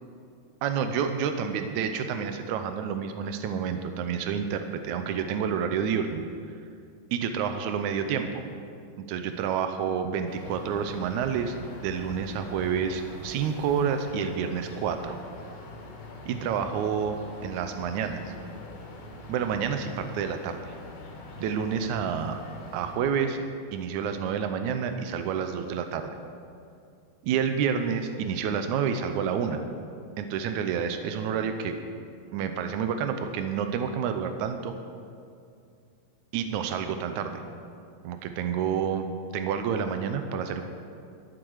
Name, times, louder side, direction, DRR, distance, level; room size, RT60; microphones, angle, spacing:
voice 1, 0.6-6.2 7.1-8.4 9.0-11.6 11.8-15.2 16.2-18.3 19.3-20.7 21.4-22.4 22.7-23.4 23.7-26.1 27.2-29.6 30.2-31.8 32.3-34.7 36.3-37.4 38.0-39.1 39.3-40.6, right 7 dB, 90° right, 7 dB, 1.7 m, -29 dB
sound 1, 10.3-23.0, left 2 dB, 75° left, 3.6 m, -44 dB
12.5 x 8.9 x 6.4 m, 2.4 s
omnidirectional pair, 4.3 m